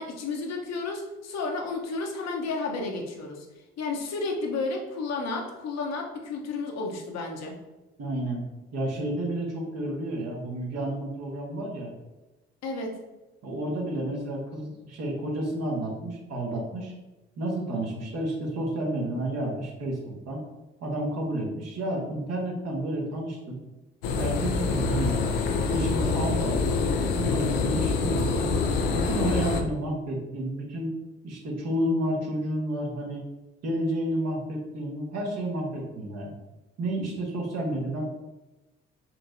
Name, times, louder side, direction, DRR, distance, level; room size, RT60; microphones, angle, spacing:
voice 1, 0.0-3.5 3.8-7.5 12.6-12.9, left 3 dB, 60° left, 1 dB, 0.8 m, -32 dB
voice 2, 8.0-8.5 8.7-11.9 13.4-16.9 17.4-20.4 20.8-23.6 24.2-25.2 25.7-26.8 27.1-28.6 28.9-31.0 31.2-33.2 33.6-36.3 36.8-38.0, right 1 dB, 60° right, -1 dB, 1.2 m, -31 dB
sound 1, 24.0-29.6, left 4 dB, 85° left, 0.5 m, -26 dB
4.4 x 3.0 x 2.6 m, 1.1 s
hypercardioid pair, 50°, 29 cm